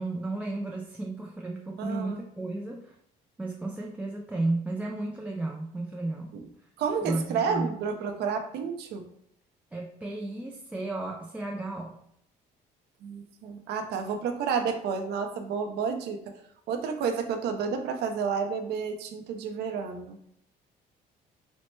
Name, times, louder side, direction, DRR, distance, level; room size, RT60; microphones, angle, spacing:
voice 1, 0.0-2.9 3.4-6.4 7.0-7.7 9.7-12.0, right 2 dB, 10° right, 0 dB, 0.3 m, -33 dB
voice 2, 1.8-2.2 6.3-6.4 6.8-9.1 13.0-16.2 16.7-20.3, right 6 dB, 75° right, 5 dB, 0.6 m, -30 dB
4.2 x 2.1 x 3.1 m, 0.73 s
cardioid pair, 110°, 17 cm